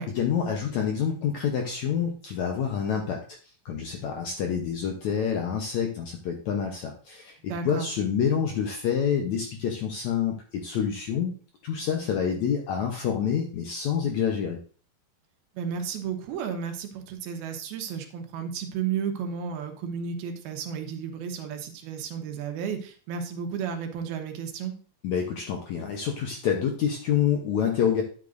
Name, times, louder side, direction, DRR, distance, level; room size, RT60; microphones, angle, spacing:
voice 1, 0.1-11.3 11.6-14.6 25.0-28.0, left 8 dB, 75° left, 2 dB, 1.7 m, -27 dB
voice 2, 7.5-7.9 15.6-24.7, right 7 dB, 85° right, 5 dB, 3.0 m, -33 dB
10.5 x 8.3 x 2.6 m, 0.39 s
omnidirectional pair, 4.4 m